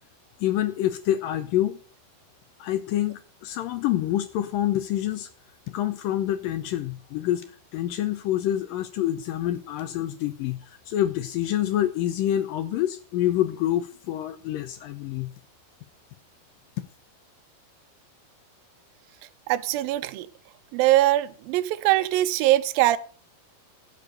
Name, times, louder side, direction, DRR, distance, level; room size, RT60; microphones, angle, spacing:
voice 1, 0.4-1.8 2.6-5.3 5.7-7.5 7.7-15.3, left 12 dB, 80° left, 2.1 m, -27 dB
voice 2, 19.5-20.3 20.7-23.0, right 15 dB, 75° right, 2.3 m, -22 dB
15.5 x 6.9 x 6.5 m
omnidirectional pair, 4.6 m